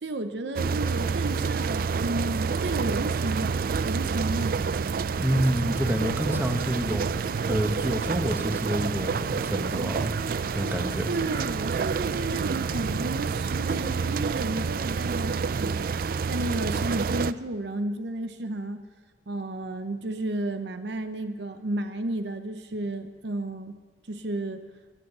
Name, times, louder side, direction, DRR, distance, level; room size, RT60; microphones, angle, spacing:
voice 1, 0.0-3.5 3.8-4.9 11.0-18.8 19.3-23.8 24.1-24.6, right 2 dB, 75° right, 8 dB, 0.8 m, -32 dB
sound 1, 0.6-17.3, right 5 dB, 55° right, 0.4 m, -28 dB
voice 2, 5.2-7.0 7.4-10.2 10.5-11.1, equal, 10° right, 3 dB, 1.4 m, -28 dB
22.0 x 8.0 x 6.8 m, 1.5 s
head